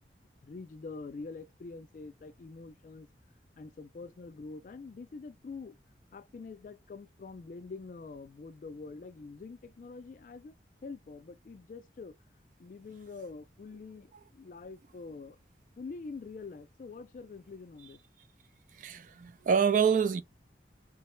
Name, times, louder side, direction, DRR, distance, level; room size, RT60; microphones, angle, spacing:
voice 1, 0.4-3.1 3.6-5.8 6.1-10.5 10.8-12.2 12.6-15.4 15.8-18.0, left 4 dB, 45° left, 0.3 m, -45 dB
voice 2, 18.8-20.2, right 6 dB, 45° right, 0.3 m, -26 dB
3.8 x 2.1 x 4.3 m
head